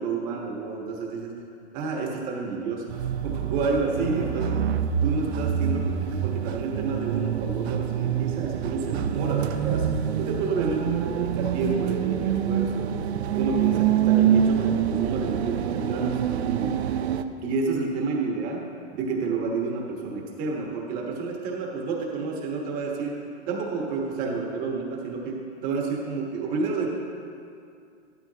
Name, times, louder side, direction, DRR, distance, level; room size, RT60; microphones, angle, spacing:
voice 1, 0.0-1.3 1.7-4.6 5.0-5.9 6.2-9.9 10.2-12.9 13.3-16.8 17.4-18.6 18.9-23.2 23.5-27.0, right 4 dB, 25° right, 0 dB, 1.3 m, -30 dB
sound 1, 2.9-17.2, right 9 dB, 65° right, 0.6 m, -26 dB
12.0 x 12.0 x 2.9 m, 2.5 s
hypercardioid pair, 160°, 35 cm